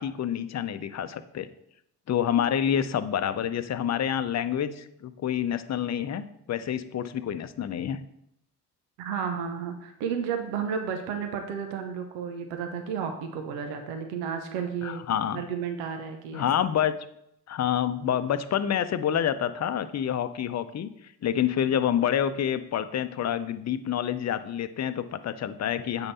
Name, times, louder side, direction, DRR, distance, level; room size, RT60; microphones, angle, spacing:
voice 1, 0.0-1.5 2.1-8.0 14.8-15.4 16.3-17.0 17.5-20.9 21.2-26.1, left 9 dB, 35° left, 12 dB, 0.7 m, -28 dB
voice 2, 9.0-15.0 15.3-16.5, right 7 dB, 80° right, 5 dB, 1.0 m, -32 dB
8.0 x 5.3 x 4.2 m, 0.76 s
hypercardioid pair, 50°, 46 cm